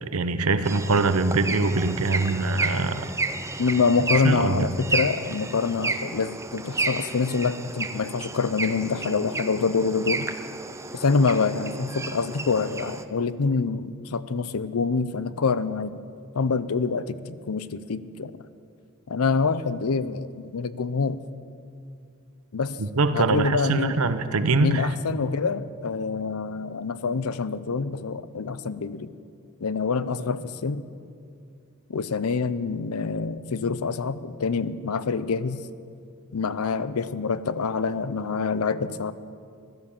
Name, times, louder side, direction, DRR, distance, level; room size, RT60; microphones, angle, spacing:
voice 1, 0.0-3.0 4.2-4.7 22.8-24.9, right 3 dB, 80° right, 11 dB, 0.8 m, -23 dB
sound 1, 0.6-13.0, right 3 dB, 15° right, 0.5 m, -32 dB
voice 2, 3.6-10.3 10.9-16.0 16.3-18.3 19.1-21.2 22.5-22.8 23.1-24.0 24.6-29.1 29.6-30.8 31.9-35.6 36.3-39.1, left 4 dB, 90° left, 15 dB, 0.6 m, -26 dB
16.0 x 12.5 x 7.2 m, 2.4 s
head